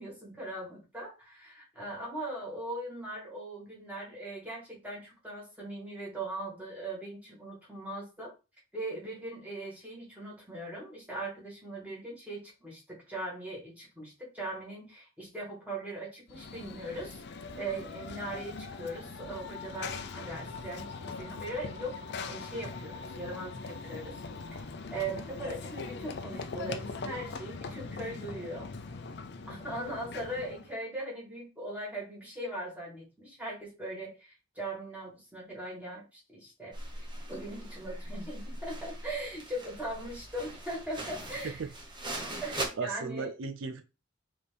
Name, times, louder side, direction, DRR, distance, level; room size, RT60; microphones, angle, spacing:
voice 1, 0.0-8.3 8.7-17.2 17.6-24.2 24.5-24.6 24.9-28.7 29.5-36.8 37.3-41.6 42.4-43.3, right 1 dB, 10° right, 1.9 m, -40 dB
Run / Train, 16.3-30.7, left 4 dB, 55° left, 0.5 m, -41 dB
sound 1, 36.7-42.7, right 1 dB, 25° right, 1.0 m, -40 dB
voice 2, 42.8-43.8, right 4 dB, 65° right, 0.4 m, -36 dB
4.1 x 3.4 x 3.4 m
head